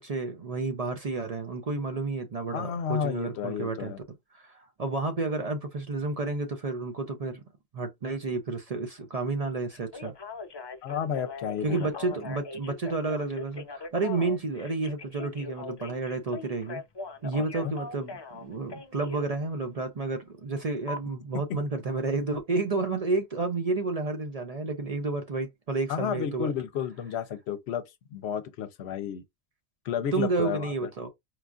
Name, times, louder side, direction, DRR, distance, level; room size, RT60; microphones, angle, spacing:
voice 1, 0.0-3.9 4.3-7.4 7.7-10.1 11.6-16.8 17.2-26.5 30.1-31.1, right 3 dB, 45° right, 0.5 m, -31 dB
voice 2, 2.5-4.0 10.8-12.1 17.4-17.7 25.9-27.8 28.1-29.2 29.9-30.7, left 8 dB, 80° left, 0.8 m, -32 dB
Telephone, 9.7-19.3 20.9-21.0, left 3 dB, 40° left, 0.3 m, -40 dB
4.6 x 2.3 x 2.5 m
omnidirectional pair, 1.1 m